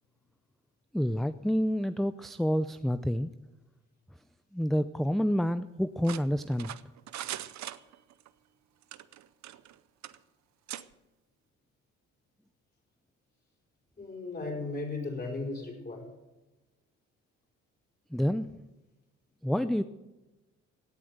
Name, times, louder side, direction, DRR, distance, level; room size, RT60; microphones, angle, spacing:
voice 1, 0.9-3.3 4.5-6.7 18.1-18.5 19.4-19.8, equal, ahead, 12 dB, 0.5 m, -28 dB
sound 1, 6.0-8.3 8.8-9.8 10.0-10.2 10.7-10.9, right 12 dB, 65° right, 0.7 m, -41 dB
voice 2, 14.0-16.1, left 3 dB, 30° left, 0 dB, 5.2 m, -36 dB
17.0 x 8.8 x 6.6 m, 1.1 s
cardioid pair, 90°, 30 cm